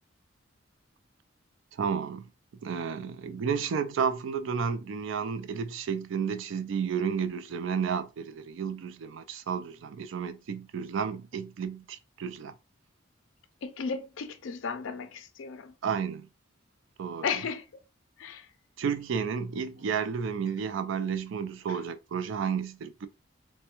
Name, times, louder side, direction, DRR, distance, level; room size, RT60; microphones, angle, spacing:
voice 1, 1.8-2.3 2.6-12.5 15.8-16.3 17.0-17.4 18.8-23.1, right 6 dB, 65° right, 0.3 m, -32 dB
voice 2, 13.6-15.7 17.2-17.6 18.2-18.4, left 5 dB, 70° left, 0.4 m, -34 dB
3.3 x 2.1 x 2.9 m
head